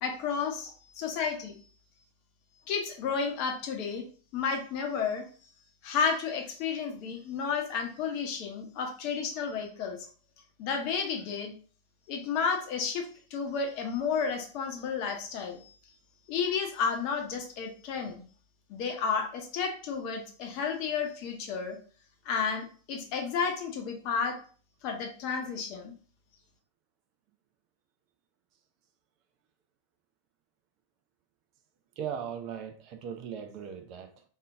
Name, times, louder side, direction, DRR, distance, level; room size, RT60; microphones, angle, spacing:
voice 1, 0.0-1.5 2.7-4.0 4.3-5.2 5.8-10.1 10.6-11.5 12.1-15.7 16.3-18.2 18.7-21.8 22.2-24.4 24.8-25.9, left 6 dB, 45° left, 0.9 m, -32 dB
voice 2, 32.0-34.2, right 8 dB, 40° right, 0.6 m, -38 dB
3.7 x 2.7 x 3.5 m
figure-of-eight pair, 90°, 0 cm